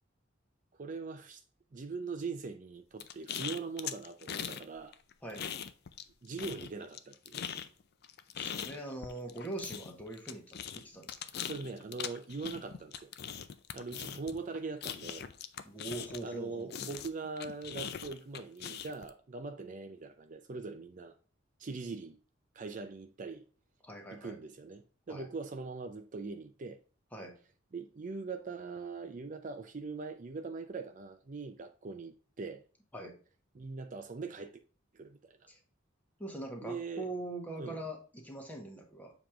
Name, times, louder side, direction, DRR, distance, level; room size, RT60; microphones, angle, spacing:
voice 1, 0.8-1.4 1.7-5.0 6.2-7.5 11.4-13.1 13.7-15.3 16.2-21.1 21.6-22.2 22.5-23.4 24.1-26.8 27.7-32.6 33.5-34.6 34.9-35.4 36.6-37.1 37.6-37.8, right 4 dB, 40° right, 0.5 m, -41 dB
sound 1, 3.0-4.6 4.9-6.1 6.4-16.4 16.7-19.1, left 8 dB, 55° left, 0.5 m, -41 dB
voice 2, 8.4-11.2 15.6-16.8 23.8-24.4 25.1-25.3 27.1-27.3 32.9-33.1 35.5-35.6 36.2-39.1, right 2 dB, 10° left, 1.3 m, -42 dB
7.2 x 3.0 x 4.9 m
head